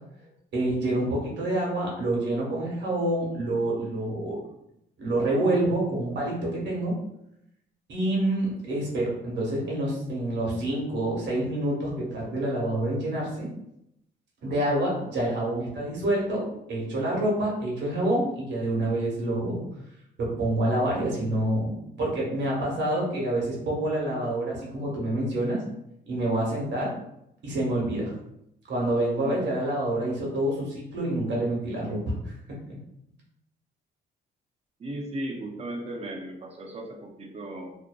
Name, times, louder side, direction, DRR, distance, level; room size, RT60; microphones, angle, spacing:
voice 1, 0.5-4.4 5.0-7.0 7.9-13.5 14.4-19.6 20.2-21.7 22.0-25.6 26.1-26.9 27.4-28.1 28.7-32.7, right 1 dB, 60° right, -3 dB, 1.0 m, -27 dB
voice 2, 34.8-37.8, right 1 dB, 30° right, 2 dB, 0.5 m, -36 dB
2.6 x 2.2 x 2.2 m, 0.80 s
cardioid pair, 90°, 20 cm